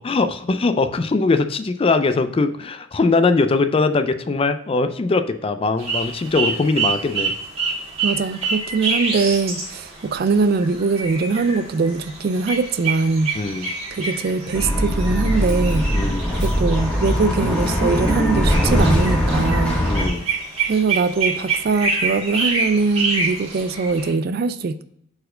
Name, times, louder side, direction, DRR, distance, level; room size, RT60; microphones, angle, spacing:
voice 1, 0.0-7.3 13.3-13.7 15.9-16.3 19.9-20.2, left 3 dB, 25° left, 10 dB, 0.3 m, -21 dB
sound 1, 5.8-24.1, right 4 dB, 30° right, 1.6 m, -27 dB
voice 2, 8.0-13.4 13.9-19.8 20.7-24.8, right 4 dB, 50° right, 13 dB, 0.3 m, -22 dB
Bus, 14.5-20.1, equal, 5° left, 1.6 m, -20 dB
4.5 x 4.3 x 4.9 m, 0.71 s
head